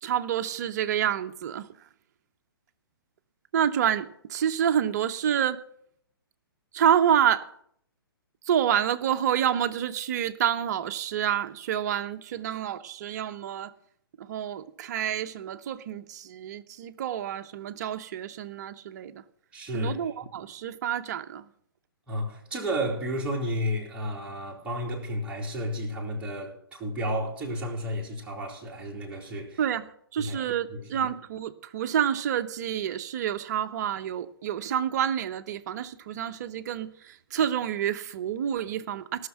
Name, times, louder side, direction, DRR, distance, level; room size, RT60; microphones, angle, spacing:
voice 1, 0.0-1.7 3.5-5.6 6.7-7.5 8.5-13.7 14.2-19.2 19.7-21.4 29.6-39.3, right 9 dB, 45° right, 0.8 m, -28 dB
voice 2, 19.5-20.0 22.1-29.6 30.2-31.1, equal, 10° right, 2.9 m, -32 dB
17.0 x 6.5 x 6.1 m
figure-of-eight pair, 125°, 13 cm